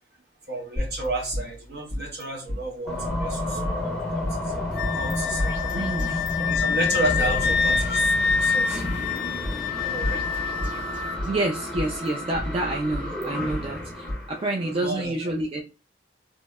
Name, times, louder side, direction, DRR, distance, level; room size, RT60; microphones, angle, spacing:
voice 1, 0.5-4.6 4.9-5.7 6.1-8.9 9.8-10.2 13.2-13.3 14.6-15.1, right 2 dB, 60° right, 0 dB, 0.9 m, -32 dB
sound 1, 0.8-2.2 2.5-2.6 3.1-4.3 4.8-5.1 5.4-7.2 7.7-9.2 9.4-9.5 10.0-11.4 11.8-13.6 14.1-14.2, left 1 dB, 85° right, 1.1 m, -33 dB
sound 2, 2.9-14.9, left 1 dB, 5° left, 0.8 m, -31 dB
Wind instrument woodwind instrument, 4.8-11.2, left 6 dB, 65° left, 0.4 m, -26 dB
voice 2, 5.7-6.2 11.2-15.6, right 2 dB, 30° right, 0 dB, 0.3 m, -28 dB
2.7 x 2.0 x 3.4 m, 0.31 s
head